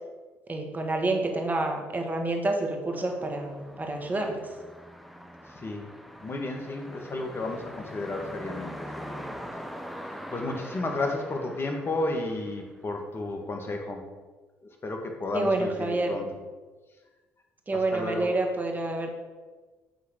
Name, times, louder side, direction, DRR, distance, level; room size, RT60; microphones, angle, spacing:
voice 1, 0.5-4.4 15.3-16.2 17.7-19.1, right 2 dB, 25° right, 3 dB, 1.8 m, -28 dB
sound 1, 2.9-13.1, equal, ahead, 1.1 m, -43 dB
voice 2, 5.5-5.9 6.2-9.2 10.3-14.0 14.8-16.3 17.9-18.3, left 2 dB, 35° left, 3 dB, 1.9 m, -32 dB
9.4 x 4.0 x 6.5 m, 1.3 s
hypercardioid pair, 60°, 6 cm